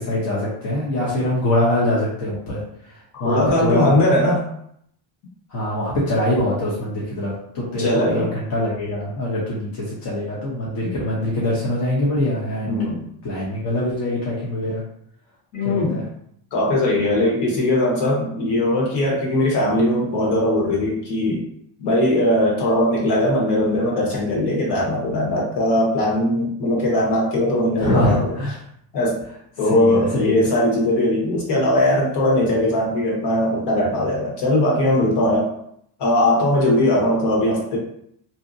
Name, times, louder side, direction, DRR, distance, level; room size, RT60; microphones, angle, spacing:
voice 1, 0.0-2.6 3.2-3.9 5.5-12.8 13.2-14.8 15.6-16.0 27.8-28.5 29.6-30.5, left 1 dB, 50° left, -6 dB, 0.8 m, -23 dB
voice 2, 3.2-4.5 7.8-8.3 12.7-13.0 15.5-16.0 16.5-21.4 21.8-28.3 28.9-29.2 29.6-35.5 36.0-37.8, left 1 dB, 70° left, -4 dB, 1.2 m, -20 dB
2.7 x 2.1 x 2.6 m, 0.70 s
cardioid pair, 120°, 43 cm